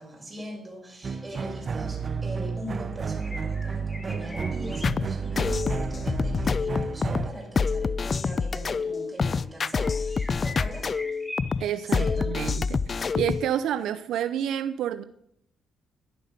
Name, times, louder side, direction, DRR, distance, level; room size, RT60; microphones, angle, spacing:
voice 1, 0.0-10.9 11.8-12.3, equal, 15° right, 0 dB, 6.0 m, -41 dB
sound 1, 1.0-7.3, right 5 dB, 40° right, 0.6 m, -31 dB
sound 2, 1.1-1.2 1.9-2.1 3.1-5.7 7.0-7.1 8.8-8.9 9.8-12.6, left 1 dB, 10° left, 2.4 m, -43 dB
sound 3, 4.8-13.5, left 5 dB, 40° left, 0.4 m, -27 dB
voice 2, 11.6-15.0, right 10 dB, 80° right, 11 dB, 0.6 m, -29 dB
11.0 x 11.0 x 6.6 m, 0.73 s
cardioid pair, 90°, 0 cm